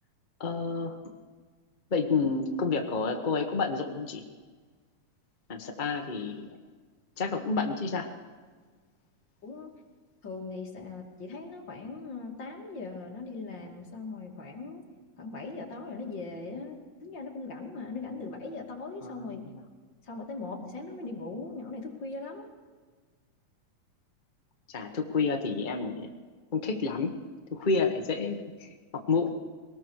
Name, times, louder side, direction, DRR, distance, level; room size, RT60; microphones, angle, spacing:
voice 1, 0.4-1.1 1.9-4.2 5.5-6.6 7.2-8.1 19.0-19.6 24.7-26.1 26.5-27.2 27.5-29.3, left 4 dB, 60° left, 3 dB, 0.5 m, -30 dB
voice 2, 10.2-14.8 15.2-19.4 20.1-22.5, left 3 dB, 40° left, 0 dB, 3.1 m, -39 dB
23.0 x 18.5 x 6.5 m, 1.5 s
omnidirectional pair, 3.4 m